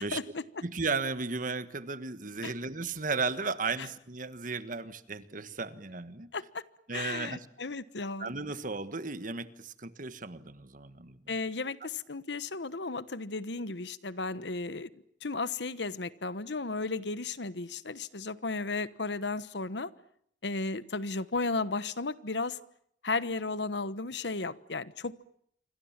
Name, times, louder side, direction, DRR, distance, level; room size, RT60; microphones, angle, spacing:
voice 1, 0.0-0.4 2.4-2.5 6.3-6.6 6.9-8.3 11.3-19.9 20.4-22.6 23.0-25.2, left 3 dB, 70° left, 15 dB, 1.2 m, -34 dB
voice 2, 0.6-6.3 6.9-7.4 8.2-11.2, right 4 dB, 50° right, 12 dB, 1.5 m, -35 dB
27.5 x 25.0 x 7.4 m, 0.70 s
head